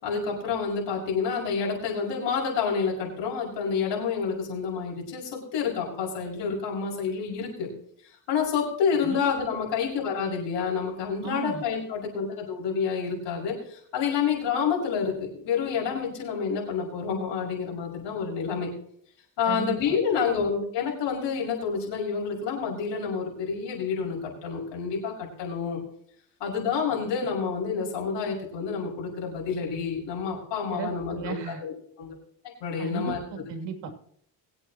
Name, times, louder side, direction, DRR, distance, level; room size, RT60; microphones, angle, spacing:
voice 1, 0.0-7.7 8.3-18.7 19.4-25.8 26.4-32.1 32.6-33.4, left 6 dB, 80° left, -2 dB, 6.1 m, -28 dB
voice 2, 11.2-11.6 19.4-19.9 30.7-31.6 32.8-34.0, right 7 dB, 80° right, 4 dB, 2.9 m, -35 dB
22.0 x 8.8 x 3.0 m, 0.64 s
cardioid pair, 110°, 42 cm